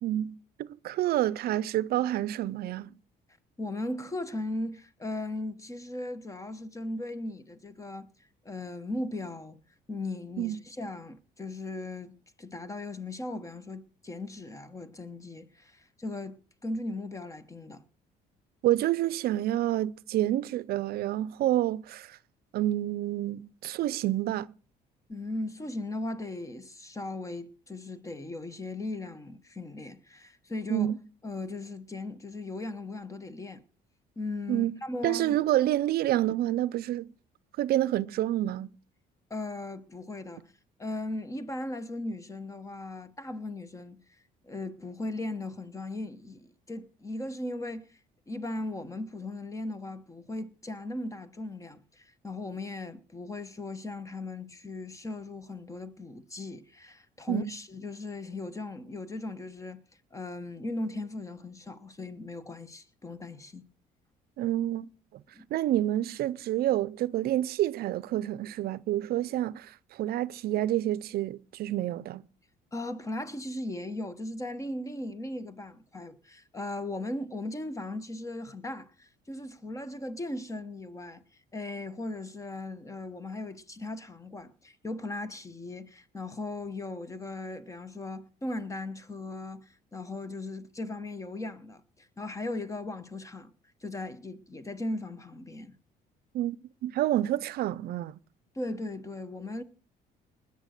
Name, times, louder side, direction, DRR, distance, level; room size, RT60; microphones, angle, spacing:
voice 1, 0.0-2.9 10.4-10.6 18.6-22.2 22.5-24.5 30.7-31.0 34.5-34.7 35.0-37.1 37.6-38.7 57.3-57.5 64.4-64.9 65.5-72.2 96.3-96.6 96.8-98.2, right 13 dB, 65° right, 0.5 m, -28 dB
voice 2, 3.6-8.1 8.4-9.6 9.9-12.1 12.4-17.8 25.1-30.9 31.2-33.6 34.2-35.4 39.3-40.4 40.8-44.0 44.4-47.9 48.3-59.8 60.1-63.6 65.3-65.5 72.7-81.2 81.5-93.5 93.8-95.7 98.5-99.6, left 2 dB, 20° left, 1.1 m, -37 dB
19.5 x 6.8 x 6.5 m
cardioid pair, 110°, 17 cm